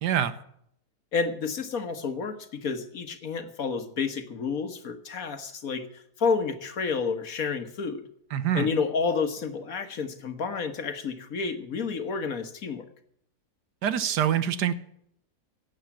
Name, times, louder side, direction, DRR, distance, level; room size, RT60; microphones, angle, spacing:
voice 1, 0.0-0.3 8.3-8.7 13.8-14.7, right 9 dB, 80° right, 13 dB, 1.6 m, -25 dB
voice 2, 1.1-8.1 8.5-12.9, left 5 dB, 60° left, 8 dB, 1.7 m, -30 dB
15.0 x 8.9 x 7.1 m, 0.70 s
omnidirectional pair, 1.8 m